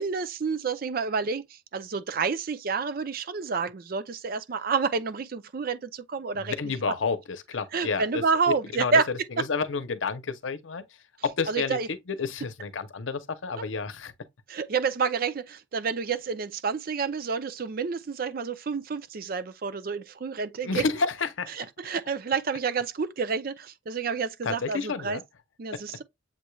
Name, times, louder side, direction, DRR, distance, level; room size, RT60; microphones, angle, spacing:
voice 1, 0.0-1.4 1.7-6.5 7.7-9.1 11.5-11.9 14.5-20.8 21.6-25.2 25.6-26.0, right 5 dB, 50° right, 0.5 m, -29 dB
voice 2, 6.3-10.8 11.2-14.1 20.6-21.7 24.4-25.2 25.7-25.8, left 4 dB, 85° left, 0.7 m, -30 dB
7.3 x 3.1 x 2.3 m
head